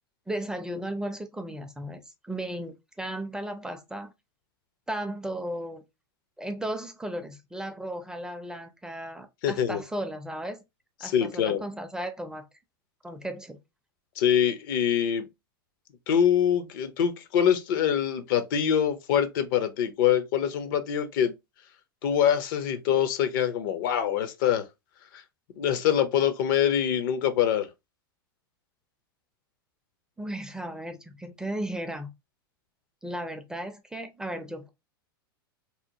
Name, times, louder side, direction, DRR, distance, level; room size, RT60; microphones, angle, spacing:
voice 1, 0.3-4.1 4.9-5.8 6.4-10.6 11.0-12.5 13.0-13.6 30.2-32.1 33.0-34.7, right 1 dB, 5° right, 0.4 m, -35 dB
voice 2, 9.4-9.8 11.0-11.6 14.2-15.3 16.1-21.3 22.0-24.7 25.6-27.7, left 9 dB, 65° left, 0.5 m, -24 dB
2.8 x 2.0 x 2.7 m
hypercardioid pair, 105°, 12 cm